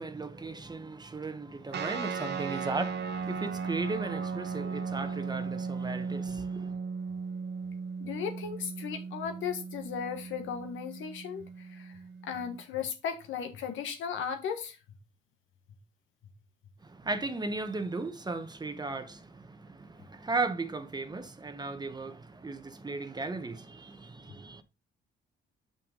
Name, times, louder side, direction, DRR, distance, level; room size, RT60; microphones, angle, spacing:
voice 1, 0.0-6.8 16.8-24.6, right 3 dB, 20° right, 0.9 m, -36 dB
sound 1, 1.7-12.6, right 5 dB, 60° right, 1.1 m, -37 dB
voice 2, 8.0-11.9 12.2-14.8, left 7 dB, 80° left, 1.5 m, -36 dB
6.9 x 5.9 x 3.7 m
cardioid pair, 90°, 20 cm